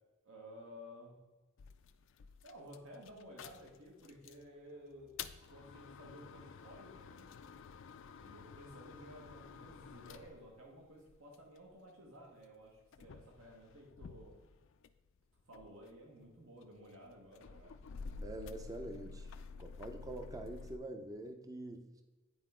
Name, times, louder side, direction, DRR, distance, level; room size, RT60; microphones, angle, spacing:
voice 1, 0.2-1.2 2.4-5.2 5.5-7.3 8.2-14.4 15.5-17.8, equal, 75° right, 0 dB, 1.5 m, -54 dB
sound 1, 1.6-4.5 4.9-11.7 12.4-15.1 15.4-20.8, left 5 dB, 65° left, 0.4 m, -51 dB
voice 2, 18.2-19.3 19.6-22.0, right 1 dB, 15° right, 6 dB, 0.5 m, -45 dB
9.5 x 4.5 x 3.7 m, 1.2 s
head